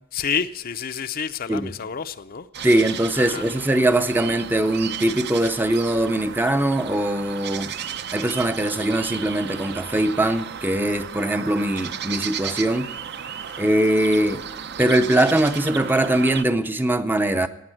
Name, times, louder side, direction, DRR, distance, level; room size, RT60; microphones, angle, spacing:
voice 1, 0.1-2.5 3.1-3.5 13.5-13.6, left 7 dB, 45° left, 0.5 m, -29 dB
sound 1, 2.5-16.4, right 8 dB, 50° right, 0.6 m, -34 dB
voice 2, 2.6-7.7 8.1-12.9 13.6-14.4 14.8-17.5, right 1 dB, 10° right, 0.5 m, -21 dB
16.0 x 9.2 x 7.7 m
head